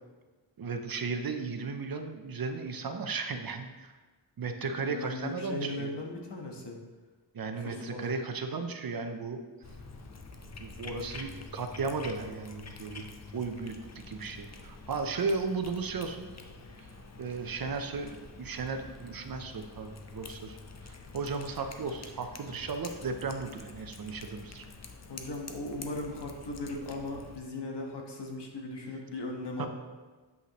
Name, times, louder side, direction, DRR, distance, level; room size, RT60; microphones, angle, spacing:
voice 1, 0.6-3.9 4.4-6.0 7.3-9.4 10.6-13.8 14.1-16.3 16.8-16.9 17.2-20.6 20.8-24.6 29.6-29.7, right 4 dB, 50° right, 6 dB, 0.6 m, -35 dB
voice 2, 4.6-6.8 7.6-8.2 25.1-29.7, left 2 dB, 60° left, 1 dB, 1.2 m, -38 dB
Cat, 9.6-27.4, left 3 dB, 35° left, 0.6 m, -47 dB
8.0 x 5.5 x 3.0 m, 1.3 s
wide cardioid pair, 95°, 46 cm